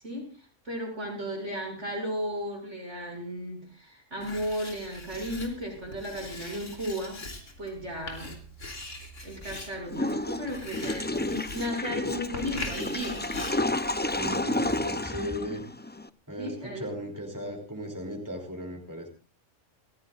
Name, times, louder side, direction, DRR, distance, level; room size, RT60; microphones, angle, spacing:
voice 1, 0.0-7.2 7.6-8.4 9.2-13.2 16.4-16.8, equal, 70° right, 1 dB, 7.4 m, -35 dB
Writing, 4.2-14.4, left 2 dB, 90° left, 3.7 m, -42 dB
Water / Toilet flush, 9.9-16.1, left 2 dB, 15° left, 0.4 m, -31 dB
voice 2, 14.1-15.6 16.3-19.1, equal, 15° right, 1 dB, 3.3 m, -36 dB
29.5 x 15.0 x 2.5 m, 0.34 s
omnidirectional pair, 1.3 m